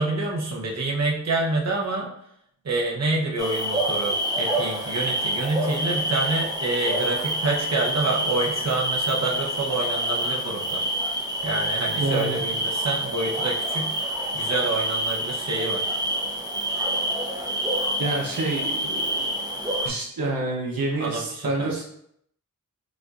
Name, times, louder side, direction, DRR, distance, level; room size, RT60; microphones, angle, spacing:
voice 1, 0.0-2.1 2.6-10.8 11.4-14.1 14.3-15.9 21.0-21.7, right 2 dB, 50° right, -1 dB, 0.8 m, -27 dB
sound 1, 3.4-19.9, right 1 dB, 10° right, 0.7 m, -27 dB
voice 2, 12.0-12.4 18.0-19.3 19.8-21.8, right 2 dB, 85° right, -2 dB, 0.8 m, -28 dB
5.1 x 2.5 x 2.4 m, 0.71 s
wide cardioid pair, 60°, 34 cm